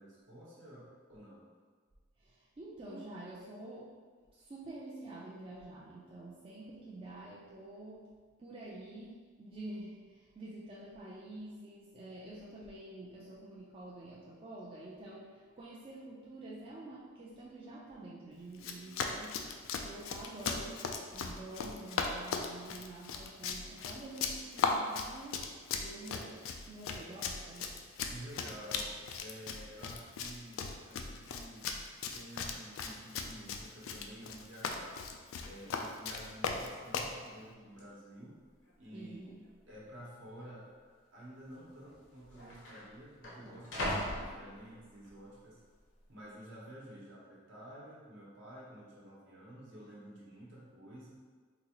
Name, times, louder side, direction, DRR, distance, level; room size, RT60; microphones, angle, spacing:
voice 1, 0.0-1.4 2.9-3.0 28.1-31.7 32.1-35.0 35.4-38.4 38.8-39.3 39.7-40.8 41.1-45.6 46.1-51.1, right 1 dB, 65° right, -6 dB, 1.0 m, -51 dB
voice 2, 2.2-3.9 4.3-8.1 8.4-19.5 19.8-25.4 25.8-27.8 38.9-39.4, right 2 dB, 30° right, -7 dB, 0.4 m, -48 dB
Run, 18.5-37.2, left 5 dB, 90° left, 0.3 m, -38 dB
sound 1, 36.7-37.1 37.8-37.9 38.6-39.2 39.4-39.5 40.4-40.6 41.6-41.7 41.9-45.1 45.6-46.0, equal, 65° left, 0.7 m, -41 dB
3.9 x 2.4 x 2.9 m, 1.5 s
head